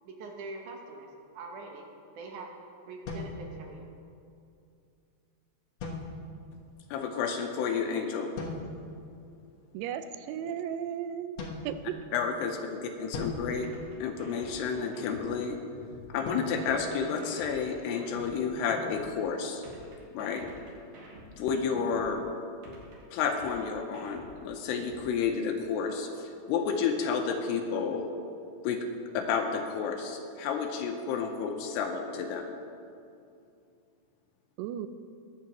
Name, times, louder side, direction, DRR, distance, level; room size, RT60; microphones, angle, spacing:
voice 1, 0.0-1.1 1.3-1.9 2.2-2.6 2.9-3.9, right 3 dB, 70° right, 1 dB, 1.9 m, -43 dB
sound 1, 3.1-4.1 5.8-6.6 8.4-9.0 11.4-12.4 13.1-14.6 16.2-17.8, left 2 dB, 65° left, 1.7 m, -41 dB
voice 2, 6.9-8.3 12.1-13.7 14.0-15.6 16.1-19.6 20.1-20.5 21.4-22.2 23.1-28.1 28.6-28.9 29.1-32.5, left 6 dB, 85° left, 3 dB, 2.9 m, -31 dB
voice 3, 9.7-11.4 11.6-12.0 34.6-34.9, right 9 dB, 85° right, 10 dB, 2.7 m, -35 dB
sound 2, 13.6-16.1 16.6-19.1 19.6-22.1 22.6-25.1, equal, 50° right, 2.9 m, -49 dB
21.0 x 8.7 x 3.0 m, 2.5 s
omnidirectional pair, 4.8 m